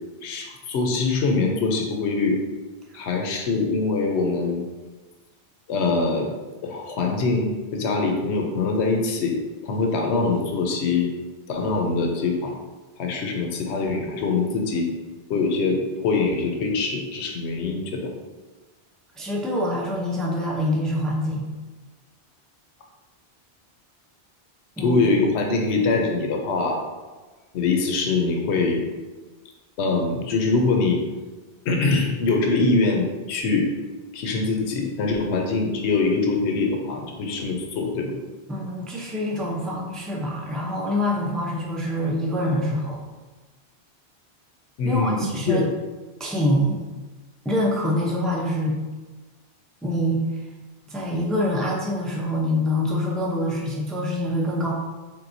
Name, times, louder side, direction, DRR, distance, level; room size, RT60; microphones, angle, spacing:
voice 1, 0.2-2.4 2.9-4.7 5.7-6.3 6.6-11.1 11.5-12.5 13.0-14.9 15.3-18.1 24.8-26.8 27.5-28.8 29.8-31.0 31.6-33.7 34.1-38.1 44.8-45.7, left 3 dB, 80° left, 2 dB, 0.9 m, -23 dB
voice 2, 19.2-21.5 24.8-25.0 38.5-43.0 44.8-45.6 46.2-46.8 47.4-48.7 49.8-50.2 50.9-54.7, left 1 dB, ahead, -3 dB, 0.4 m, -25 dB
4.6 x 3.4 x 2.6 m, 1.3 s
omnidirectional pair, 1.1 m